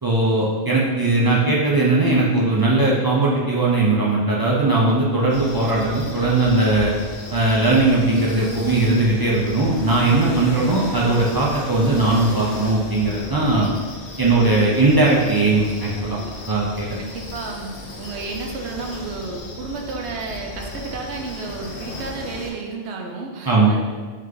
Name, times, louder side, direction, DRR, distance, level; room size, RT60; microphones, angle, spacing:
voice 1, 0.0-6.9 7.3-13.7 14.2-16.2 16.5-16.9 23.5-23.7, right 2 dB, 35° right, -5 dB, 0.4 m, -19 dB
sound 1, 5.3-22.5, left 2 dB, 80° left, 1.0 m, -35 dB
voice 2, 17.0-23.8, right 4 dB, 85° right, 2 dB, 0.9 m, -32 dB
3.2 x 3.2 x 3.7 m, 1.5 s
omnidirectional pair, 1.1 m